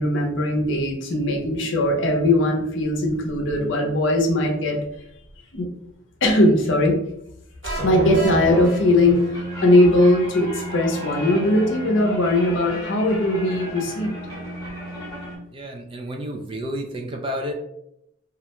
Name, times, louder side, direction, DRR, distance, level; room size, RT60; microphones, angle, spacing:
voice 1, 0.0-4.8 5.5-5.7 6.2-7.0 7.6-9.2 9.6-14.1, left 1 dB, 65° left, 1 dB, 0.6 m, -20 dB
sound 1, 7.6-9.6, right 1 dB, 70° right, 1.0 m, -28 dB
sound 2, 8.2-15.4, equal, 20° left, 0.9 m, -33 dB
voice 2, 15.5-17.5, equal, 25° right, 2 dB, 0.3 m, -30 dB
2.4 x 2.1 x 2.9 m, 0.78 s
head